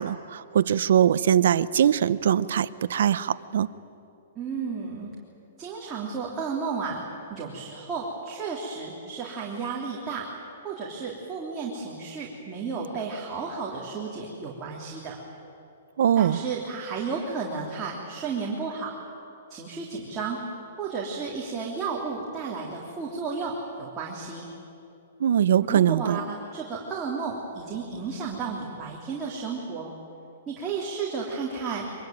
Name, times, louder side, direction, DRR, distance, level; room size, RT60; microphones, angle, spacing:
voice 1, 0.0-3.7 16.0-16.4 25.2-26.2, right 9 dB, 65° right, 15 dB, 0.8 m, -22 dB
voice 2, 4.3-5.1 5.6-7.0 7.3-10.3 10.6-15.2 16.2-19.0 19.5-20.4 20.8-24.5 25.7-29.9 30.5-31.9, right 5 dB, 15° right, -5 dB, 3.1 m, -33 dB
24.0 x 22.5 x 9.3 m, 2.8 s
hypercardioid pair, 160°, 0 cm